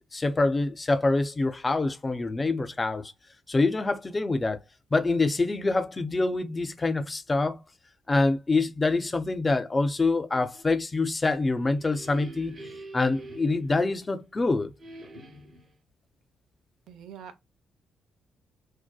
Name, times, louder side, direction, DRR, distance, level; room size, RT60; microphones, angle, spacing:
voice 1, 0.1-3.1 3.5-4.6 4.9-7.6 8.1-12.6 12.9-14.7, left 3 dB, 25° left, 0.4 m, -25 dB
Feedback at set-up, 11.4-14.3 14.8-15.8, right 1 dB, 45° right, 0.8 m, -45 dB
voice 2, 16.9-17.4, right 8 dB, 80° right, 0.5 m, -44 dB
2.6 x 2.2 x 2.2 m
cardioid pair, 90°, 0 cm